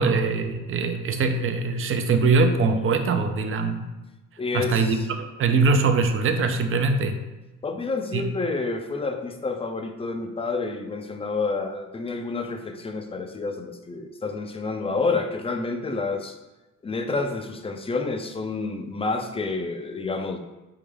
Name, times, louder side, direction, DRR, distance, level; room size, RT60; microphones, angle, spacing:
voice 1, 0.0-3.9 4.5-7.2 8.1-8.3, right 4 dB, 45° right, 7 dB, 0.5 m, -22 dB
voice 2, 4.4-5.1 7.6-16.4 16.8-20.4, left 3 dB, 20° left, 6 dB, 0.5 m, -29 dB
4.1 x 3.7 x 3.4 m, 1.1 s
cardioid pair, 90°, 30 cm